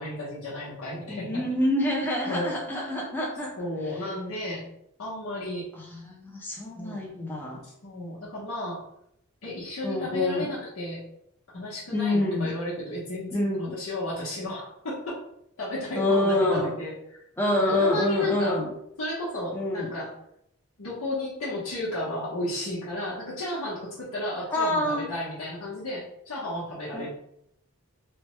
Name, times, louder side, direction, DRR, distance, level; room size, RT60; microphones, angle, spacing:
voice 1, 0.0-1.4 2.3-2.9 3.6-4.7 5.0-5.7 6.7-7.0 7.6-8.8 9.4-11.0 11.5-15.2 15.6-17.2 17.5-18.6 19.0-20.1 20.8-27.1, left 1 dB, 80° left, -9 dB, 0.9 m, -33 dB
voice 2, 1.1-3.6 5.7-7.6 9.8-10.5 11.9-12.5 13.3-13.7 15.9-16.7 17.4-18.7 19.5-19.9 24.5-25.1 26.9-27.1, left 1 dB, 10° left, -2 dB, 0.4 m, -26 dB
3.2 x 2.0 x 3.0 m, 0.75 s
head